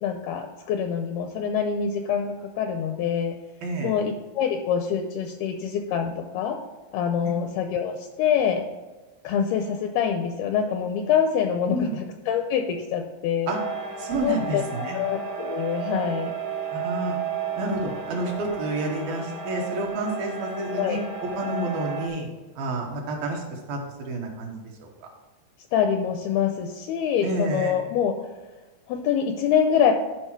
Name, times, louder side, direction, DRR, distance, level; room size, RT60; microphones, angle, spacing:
voice 1, 0.0-3.4 3.8-6.6 6.9-8.6 9.2-13.5 14.2-16.3 20.8-21.0 25.7-28.2 28.9-29.9, left 8 dB, 80° left, 5 dB, 2.3 m, -25 dB
voice 2, 3.6-4.0 11.6-12.0 13.5-13.6 14.0-15.0 16.7-17.2 17.6-21.0 21.3-22.3 22.6-24.5 24.8-24.9 27.2-27.9, right 2 dB, 65° right, 0 dB, 2.9 m, -29 dB
sound 1, 13.5-22.1, right 6 dB, 85° right, 1.5 m, -33 dB
11.5 x 5.2 x 4.5 m, 1.2 s
omnidirectional pair, 4.9 m